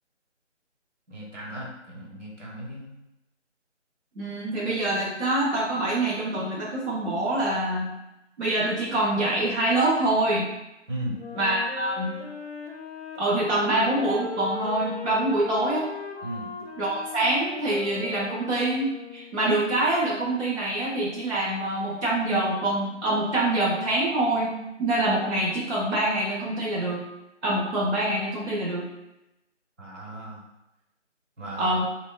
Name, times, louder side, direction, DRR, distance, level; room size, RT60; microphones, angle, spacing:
voice 1, 1.1-3.0 10.9-11.2 16.2-16.5 29.8-30.4 31.4-31.8, right 1 dB, 90° right, -3 dB, 1.1 m, -36 dB
voice 2, 4.1-7.9 8.4-10.5 11.4-12.1 13.2-15.9 16.8-27.0 27.4-28.9 31.6-31.8, right 1 dB, 65° right, -6 dB, 0.8 m, -25 dB
Wind instrument woodwind instrument, 11.1-19.5, left 4 dB, 55° left, 0.5 m, -38 dB
2.8 x 2.1 x 2.3 m, 0.92 s
figure-of-eight pair, 170°, 37 cm